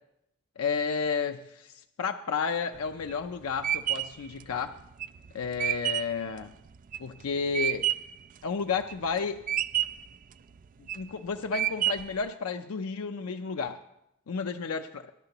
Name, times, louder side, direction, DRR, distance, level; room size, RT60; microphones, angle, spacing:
voice 1, 0.6-4.8 5.3-6.5 7.0-7.9 8.4-9.4 10.8-13.8 14.3-15.1, left 5 dB, 85° left, 6 dB, 0.5 m, -32 dB
sound 1, 2.7-8.2 8.6-9.2 9.5-10.1 10.6-11.1 11.5-12.2, right 12 dB, 40° right, 0.3 m, -29 dB
21.5 x 10.5 x 3.0 m, 0.82 s
head